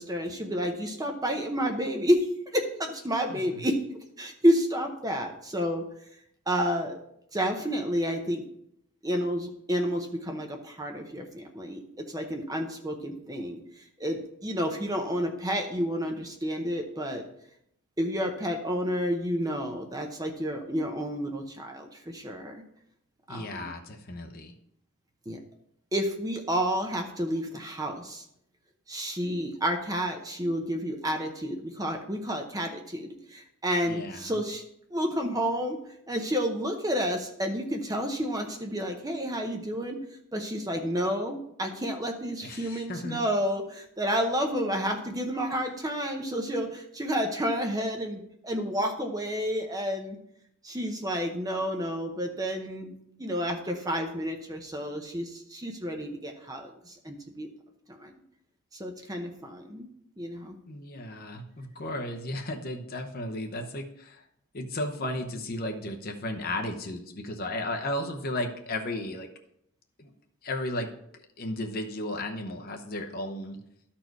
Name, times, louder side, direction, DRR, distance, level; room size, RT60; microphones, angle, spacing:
voice 1, 0.0-5.9 6.5-7.0 7.3-8.4 9.0-13.6 14.0-17.2 18.0-22.6 23.3-23.7 25.3-25.4 25.9-28.2 28.9-34.6 34.9-35.8 36.1-40.0 40.3-50.2 50.6-52.9 53.2-57.5 57.9-58.1 58.8-59.9 60.2-60.6, equal, 15° right, 4 dB, 0.8 m, -30 dB
voice 2, 3.3-3.6 23.3-24.5 33.9-34.2 42.4-43.2 45.5-45.6 60.7-64.2 64.5-69.3 70.0-70.1 70.4-70.9 71.4-73.6, left 1 dB, 40° left, 4 dB, 0.8 m, -34 dB
12.5 x 4.4 x 4.6 m, 0.75 s
head